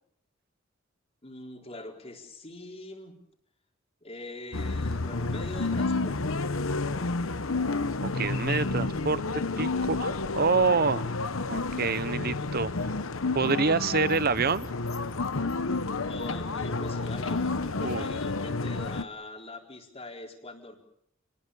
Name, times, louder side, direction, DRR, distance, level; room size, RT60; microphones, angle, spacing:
voice 1, 1.2-3.1 4.0-6.4 16.0-20.8, left 2 dB, 30° left, 1 dB, 4.3 m, -43 dB
sound 1, 4.5-19.0, left 3 dB, 85° left, 1.1 m, -30 dB
voice 2, 8.0-11.1 11.5-12.7 13.3-14.7 17.8-18.1, right 4 dB, 50° right, 16 dB, 0.9 m, -27 dB
29.5 x 20.5 x 7.0 m, 0.72 s
head